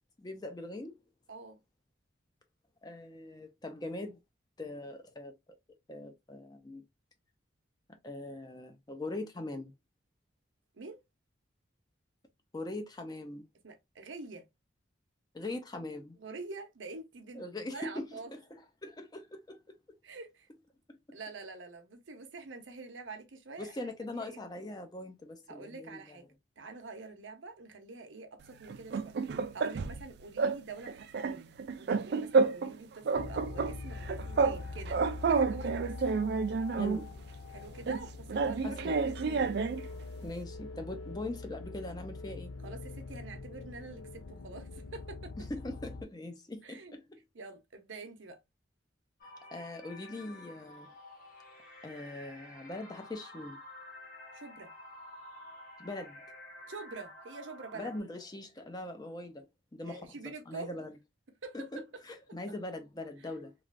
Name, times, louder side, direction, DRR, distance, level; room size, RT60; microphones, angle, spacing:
voice 1, 0.2-1.0 2.8-4.2 4.6-5.3 5.9-6.8 7.9-9.7 12.5-13.5 15.3-16.2 17.3-19.8 21.1-21.2 23.6-26.2 36.8-37.2 38.6-39.0 40.2-42.5 45.4-47.2 49.5-50.9 51.8-53.6 55.8-56.2 57.7-59.5 59.7-61.0 61.5-63.5, left 2 dB, 20° left, 0.4 m, -41 dB
voice 2, 1.3-1.6 10.7-11.0 13.6-14.5 16.2-17.4 17.7-18.3 20.0-20.5 21.1-24.4 25.5-26.3 26.6-31.5 31.8-35.9 37.5-38.9 39.2-39.5 42.6-45.3 46.6-47.0 47.3-48.4 54.3-54.7 56.7-57.9 59.9-60.8 61.4-61.8, right 3 dB, 75° right, 0.7 m, -46 dB
sound 1, 28.7-30.0 30.4-30.6 30.9-32.8 33.0-34.6 34.9-37.0 37.9-39.8, right 4 dB, 55° right, 0.3 m, -30 dB
sound 2, 33.1-46.0, left 3 dB, 80° left, 0.4 m, -43 dB
sound 3, 49.2-58.0, left 1 dB, 45° left, 1.0 m, -50 dB
3.1 x 2.4 x 2.4 m
head